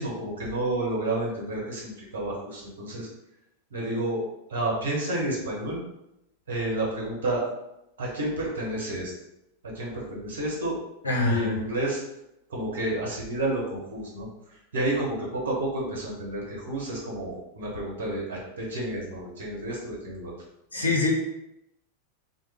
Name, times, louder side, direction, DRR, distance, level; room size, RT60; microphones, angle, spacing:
voice 1, 0.0-3.1 3.7-4.2 4.5-5.8 6.5-7.4 8.0-9.1 9.6-10.7 11.2-12.0 12.5-20.3, right 1 dB, 65° right, -4 dB, 0.9 m, -30 dB
voice 2, 11.0-11.6 20.7-21.1, left 2 dB, 80° left, -3 dB, 0.7 m, -24 dB
2.3 x 2.1 x 3.3 m, 0.86 s
figure-of-eight pair, 90°, 0 cm